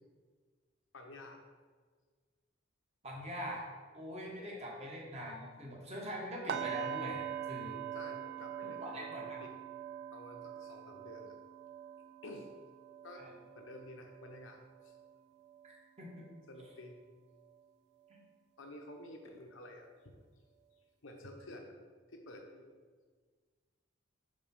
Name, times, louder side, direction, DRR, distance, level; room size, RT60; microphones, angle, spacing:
voice 1, 0.9-1.4 4.4-4.6 7.9-9.5 10.1-11.3 12.2-12.5 13.0-13.2 13.5-14.9 16.5-17.0 18.6-20.2 21.0-21.7 22.1-22.8, left 1 dB, 80° left, 3 dB, 0.9 m, -51 dB
voice 2, 3.0-3.6 3.9-7.8 8.6-9.2 13.1-13.3 15.6-16.1 18.1-18.2, equal, 35° right, -3 dB, 1.4 m, -43 dB
sound 1, 6.5-16.4 16.7-17.0 17.5-17.6, right 10 dB, 60° right, 0.4 m, -44 dB
5.3 x 3.9 x 5.4 m, 1.5 s
head